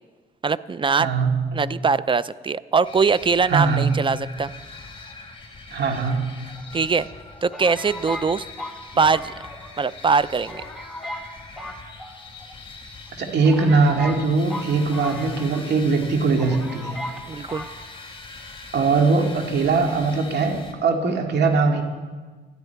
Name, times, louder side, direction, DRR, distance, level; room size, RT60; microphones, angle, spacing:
voice 1, 0.4-1.1 1.5-4.5 6.7-7.1 7.4-8.5 9.0-9.3 9.8-10.6 17.3-17.7, right 5 dB, 25° right, 17 dB, 0.5 m, -22 dB
voice 2, 1.0-1.6 3.5-4.0 5.7-6.3 13.2-17.0 18.7-21.8, right 4 dB, 60° right, 3 dB, 2.4 m, -21 dB
sound 1, 2.8-20.7, left 3 dB, 25° left, 2.3 m, -42 dB
sound 2, 6.1-6.8 7.5-9.8 10.1-10.2 10.5-11.3 11.6-12.5 13.1-13.2 13.4-15.7 16.0-16.1 16.4-17.2 17.5-17.7, left 1 dB, ahead, 2.0 m, -36 dB
19.5 x 13.0 x 4.7 m, 1.4 s
cardioid pair, 90°, 20 cm